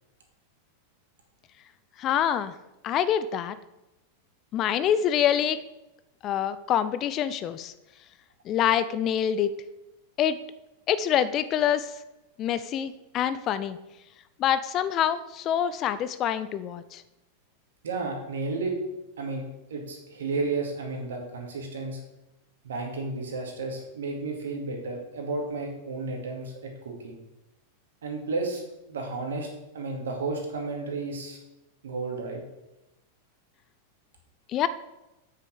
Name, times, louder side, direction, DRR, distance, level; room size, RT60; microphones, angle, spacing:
voice 1, 2.0-2.5 2.8-3.6 4.5-5.6 6.2-7.7 8.5-9.5 10.2-10.4 10.9-11.9 12.4-13.8 14.4-17.0 34.5-34.7, left 9 dB, 35° left, 15 dB, 0.5 m, -26 dB
voice 2, 17.8-18.8 19.2-19.4 19.7-22.0 22.6-27.2 28.0-29.5 29.7-31.4 31.8-32.4, right 3 dB, 65° right, 2 dB, 2.4 m, -32 dB
8.4 x 6.7 x 6.5 m, 0.97 s
figure-of-eight pair, 90°, 0 cm